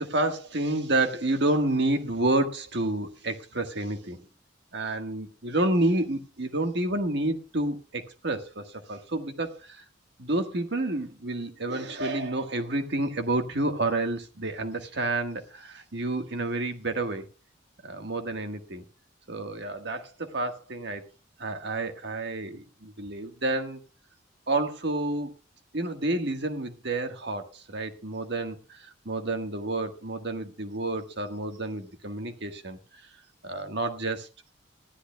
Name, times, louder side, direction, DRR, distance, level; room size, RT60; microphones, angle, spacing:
voice 1, 0.0-4.2 4.7-9.8 10.2-17.3 17.8-18.8 19.3-21.0 21.4-23.8 24.5-25.3 25.7-32.8 33.4-34.3, right 2 dB, 60° right, 1.5 m, -29 dB
19.0 x 13.0 x 2.3 m
head